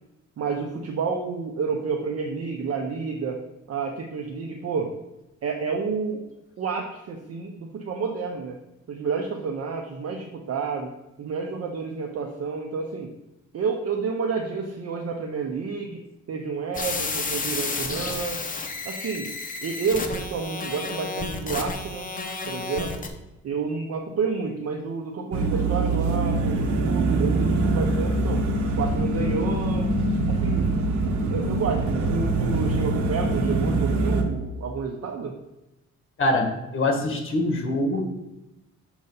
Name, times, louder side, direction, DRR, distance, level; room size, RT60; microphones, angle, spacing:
voice 1, 0.4-3.4 3.7-4.9 5.4-6.2 6.6-8.6 8.9-10.9 11.2-13.1 13.5-16.0 16.3-18.4 18.8-19.3 19.6-22.1 22.5-23.1 23.4-28.4 28.8-29.9 30.3-30.8 31.3-35.4, right 5 dB, 55° right, 1 dB, 0.8 m, -30 dB
sound 1, 16.7-23.1, left 3 dB, 25° left, 0.8 m, -31 dB
sound 2, 25.3-34.2, right 2 dB, 80° right, 1.0 m, -24 dB
voice 2, 36.2-38.0, left 1 dB, 45° left, 3 dB, 1.4 m, -24 dB
6.5 x 3.1 x 5.5 m, 0.95 s
cardioid pair, 110°, 30 cm